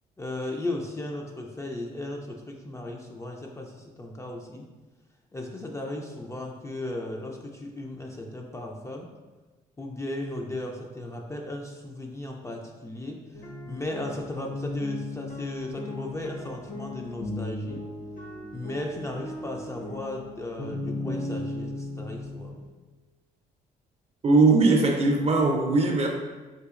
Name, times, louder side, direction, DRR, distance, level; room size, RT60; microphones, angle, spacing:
voice 1, 0.2-4.7 5.3-9.1 9.8-17.9 18.5-22.5, left 1 dB, 15° left, 0 dB, 0.4 m, -36 dB
sound 1, 13.3-22.7, left 2 dB, 50° left, 0.8 m, -36 dB
voice 2, 24.2-26.1, right 3 dB, 40° right, 2 dB, 0.6 m, -20 dB
3.9 x 2.7 x 2.4 m, 1.3 s
supercardioid pair, 65°, 17 cm